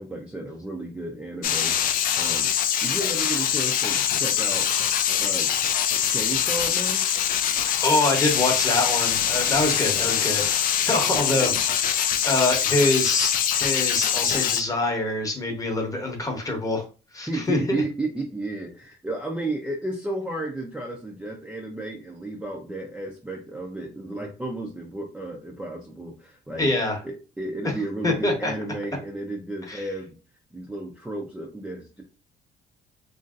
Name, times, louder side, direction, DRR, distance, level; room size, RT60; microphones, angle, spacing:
voice 1, 0.0-1.8 2.1-2.5 2.8-4.7 5.2-5.5 6.1-7.1 11.3-11.6 17.3-26.7 27.0-30.2 30.5-32.0, right 2 dB, 5° right, 0 dB, 0.5 m, -33 dB
sound 1, 1.4-14.6, left 9 dB, 55° left, 0.4 m, -23 dB
voice 2, 7.8-16.8 17.1-17.8 26.6-27.0 28.0-28.5 29.7-29.8, left 2 dB, 20° left, 2 dB, 0.9 m, -25 dB
2.9 x 2.6 x 2.4 m, 0.34 s
cardioid pair, 110°, 17 cm